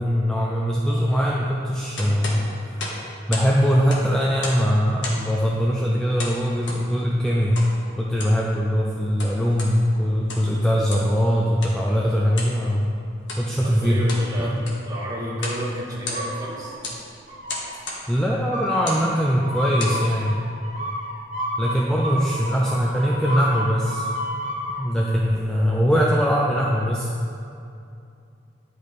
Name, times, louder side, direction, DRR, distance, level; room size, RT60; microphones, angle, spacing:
voice 1, 0.0-2.9 3.3-7.6 8.0-12.9 13.4-14.0 14.4-14.5 18.1-20.4 21.6-24.1 24.8-27.1, equal, 5° left, -4 dB, 0.5 m, -21 dB
sound 1, 2.0-3.5 3.8-4.7 5.0-5.4 6.2-6.8 7.5-7.7 8.1-8.4 9.0-9.7 10.2-10.5 10.9-11.1 11.6-11.8 12.3-12.6 13.2-13.5 13.9-14.3 14.6-14.9 15.4-15.6 15.9-16.5 16.8-17.0 17.5-18.0 18.7-19.1 19.6-20.0, left 2 dB, 70° left, 1.4 m, -33 dB
voice 2, 13.6-14.5 14.8-16.7, equal, 20° right, -8 dB, 1.8 m, -30 dB
sound 2, 16.1-16.9 17.3-17.8 18.5-24.8, equal, 40° right, 1.0 m, -31 dB
10.5 x 5.2 x 4.1 m, 2.5 s
head